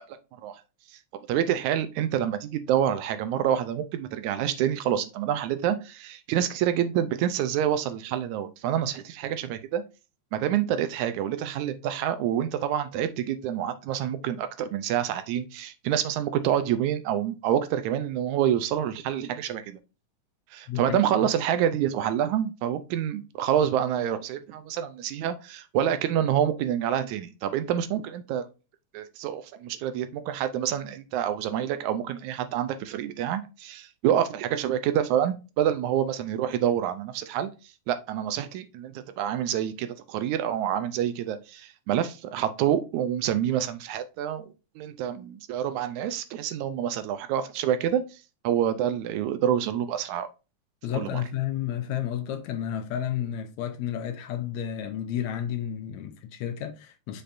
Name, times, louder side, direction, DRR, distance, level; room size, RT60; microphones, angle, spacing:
voice 1, 1.3-9.8 10.3-19.8 20.5-28.5 28.9-37.5 37.9-50.3 50.9-51.2, right 10 dB, 80° right, 2.0 m, -27 dB
voice 2, 20.7-21.0 50.8-57.2, left 10 dB, 75° left, 1.9 m, -31 dB
6.7 x 5.8 x 2.5 m
omnidirectional pair, 3.5 m